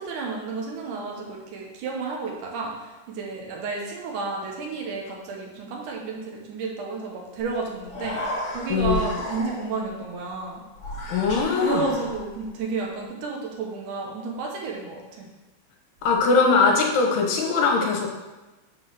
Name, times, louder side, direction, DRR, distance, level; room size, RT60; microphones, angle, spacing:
voice 1, 0.0-10.6 11.6-15.3, right 4 dB, 75° right, -1 dB, 1.8 m, -31 dB
Human voice, 7.5-7.6 7.8-9.9 10.8-12.5, left 1 dB, 45° left, 2.1 m, -33 dB
voice 2, 8.7-9.1 11.1-11.8 16.0-18.1, left 4 dB, 75° left, 1 dB, 3.1 m, -21 dB
7.4 x 3.7 x 6.2 m, 1.1 s
omnidirectional pair, 5.0 m